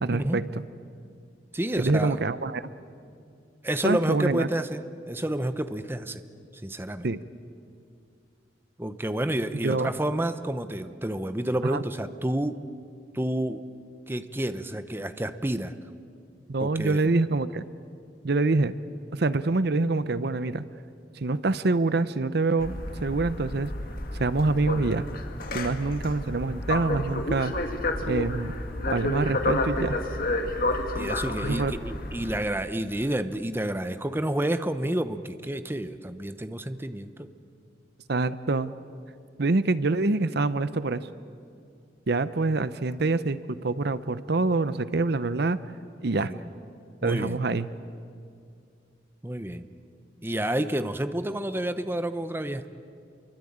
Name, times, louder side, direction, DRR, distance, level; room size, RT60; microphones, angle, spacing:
voice 1, 0.0-0.6 1.8-2.7 3.8-4.5 7.0-7.2 9.6-9.9 11.6-11.8 16.5-17.6 18.2-18.8 19.1-20.6 21.2-23.7 24.1-25.1 25.5-27.7 28.0-28.5 28.9-30.0 31.4-31.7 38.1-38.7 39.4-41.1 42.1-45.6 46.0-46.3 47.0-47.7, right 3 dB, 60° right, 14 dB, 0.7 m, -26 dB
voice 2, 1.5-2.2 3.6-6.2 6.6-7.0 8.8-12.6 13.1-13.6 14.1-15.7 16.6-17.0 30.9-37.3 46.1-46.5 47.0-47.4 49.2-49.6 50.2-52.7, right 1 dB, 10° right, 10 dB, 0.8 m, -29 dB
sound 1, 22.6-32.4, left 2 dB, 50° left, 2.1 m, -30 dB
28.5 x 23.5 x 8.7 m, 2.4 s
head